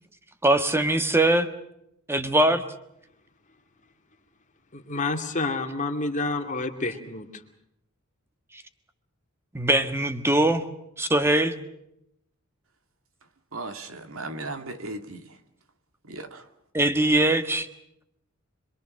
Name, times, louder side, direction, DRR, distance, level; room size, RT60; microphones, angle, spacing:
voice 1, 0.4-1.5 2.1-2.6 9.5-10.7 11.0-11.5 16.7-17.7, right 1 dB, 10° right, 1.5 m, -21 dB
voice 2, 4.7-7.4, left 3 dB, 35° left, 2.6 m, -29 dB
voice 3, 13.5-15.4 16.1-16.5, right 2 dB, 70° right, 2.1 m, -36 dB
26.5 x 23.0 x 6.5 m
head